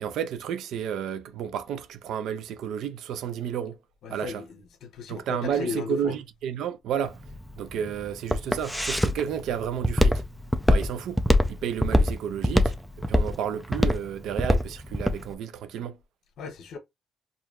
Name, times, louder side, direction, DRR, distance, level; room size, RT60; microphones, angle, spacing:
voice 1, 0.0-3.8 4.1-4.4 5.1-7.2 7.6-10.2 10.7-11.2 11.5-12.7 13.1-16.0, right 8 dB, 80° right, 0.6 m, -31 dB
voice 2, 4.0-6.1 16.4-16.8, left 6 dB, 75° left, 0.8 m, -36 dB
Walk footsteps, 7.1-15.2, left 1 dB, ahead, 0.6 m, -23 dB
4.7 x 2.7 x 2.3 m
cardioid pair, 90°, 0 cm